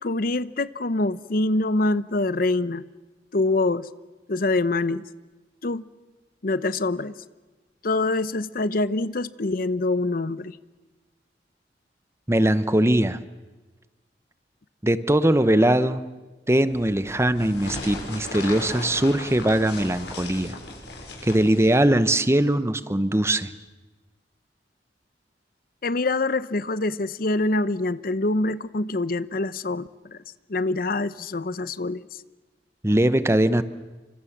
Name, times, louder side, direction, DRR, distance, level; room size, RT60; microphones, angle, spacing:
voice 1, 0.0-2.8 3.3-3.9 4.3-5.0 5.6-5.8 6.4-7.1 7.8-10.6 25.8-30.2 30.5-32.2, left 2 dB, 55° left, 15 dB, 0.8 m, -25 dB
voice 2, 12.3-13.2 14.8-16.0 16.5-20.6 21.2-23.5 32.8-33.6, right 1 dB, 15° right, 13 dB, 0.9 m, -21 dB
sound 1, 16.7-21.7, left 2 dB, 75° left, 7.4 m, -37 dB
30.0 x 25.5 x 7.4 m, 1.2 s
head